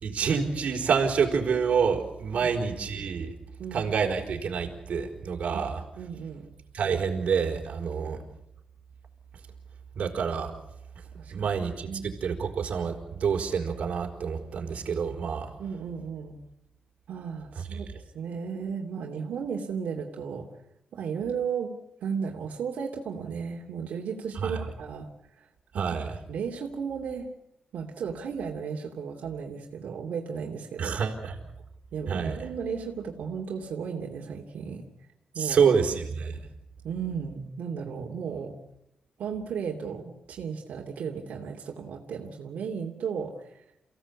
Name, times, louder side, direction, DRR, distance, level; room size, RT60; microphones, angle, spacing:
voice 1, 0.0-3.3 3.7-5.8 6.7-8.2 9.9-10.5 11.3-15.5 17.7-17.8 24.4-24.7 25.7-26.2 30.8-31.3 32.1-32.4 35.3-36.4, right 6 dB, 60° right, 1 dB, 4.6 m, -27 dB
voice 2, 3.6-3.9 5.5-5.6 6.0-6.5 8.0-8.2 11.2-11.5 11.8-12.1 15.6-16.4 17.1-20.5 20.9-21.7 22.0-25.1 25.3-25.5 25.7-26.0 26.3-27.3 27.7-31.0 31.9-34.8 35.3-35.7 36.8-38.5 39.2-43.6, right 6 dB, 90° right, 0 dB, 2.9 m, -35 dB
29.5 x 17.0 x 8.6 m, 0.83 s
wide cardioid pair, 150°, 2 cm